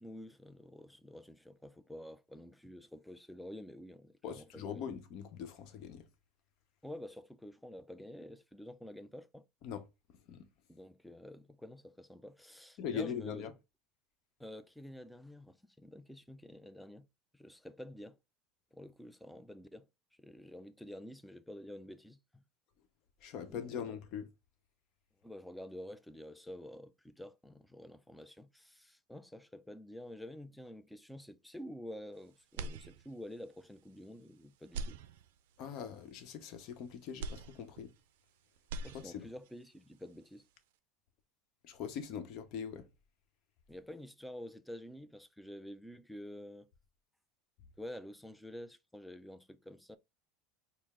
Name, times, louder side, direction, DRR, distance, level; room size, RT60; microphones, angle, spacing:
voice 1, 0.0-4.9 6.8-9.4 10.7-13.5 14.4-17.1 17.3-18.2 18.7-19.9 20.2-22.4 23.5-23.8 25.2-35.0 38.8-40.4 43.7-46.7 47.8-50.0, left 1 dB, 5° left, 0.4 m, -49 dB
voice 2, 4.2-6.1 9.6-9.9 10.3-10.5 12.8-13.5 23.2-24.3 35.6-37.9 38.9-39.3 41.6-42.9, left 7 dB, 60° left, 0.8 m, -41 dB
sound 1, 32.5-33.4 33.9-34.0 34.6-35.7 37.2-38.3 38.6-39.5, right 3 dB, 80° right, 0.4 m, -43 dB
4.4 x 2.0 x 3.6 m
supercardioid pair, 105°, 0 cm